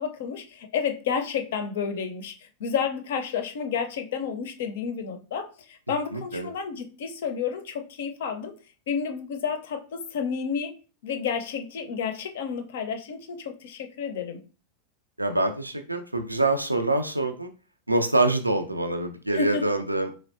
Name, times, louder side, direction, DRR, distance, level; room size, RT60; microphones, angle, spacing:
voice 1, 0.0-2.3 2.6-8.5 8.9-10.7 11.0-14.4 19.3-19.8, left 6 dB, 55° left, 8 dB, 0.5 m, -30 dB
voice 2, 6.1-6.5 15.2-17.5 17.9-20.2, right 2 dB, 85° right, 7 dB, 0.3 m, -25 dB
3.8 x 3.1 x 2.5 m, 0.35 s
figure-of-eight pair, 90°, 0 cm